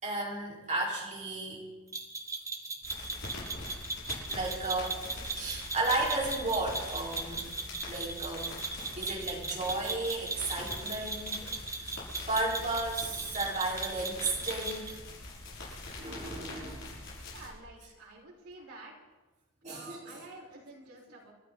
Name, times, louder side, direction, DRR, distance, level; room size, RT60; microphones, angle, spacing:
voice 1, 0.0-1.7 4.3-7.6 7.9-8.6 8.9-11.8 12.3-15.0 16.0-16.8 19.6-20.2, right 2 dB, 35° right, -3 dB, 4.1 m, -34 dB
sound 1, 1.9-15.0, right 3 dB, 15° right, 0.9 m, -38 dB
sound 2, 2.8-17.5, left 2 dB, 60° left, 6.1 m, -43 dB
voice 2, 17.3-18.9 19.7-21.3, right 2 dB, 85° right, -4 dB, 4.4 m, -49 dB
29.0 x 12.5 x 3.9 m, 1.1 s
head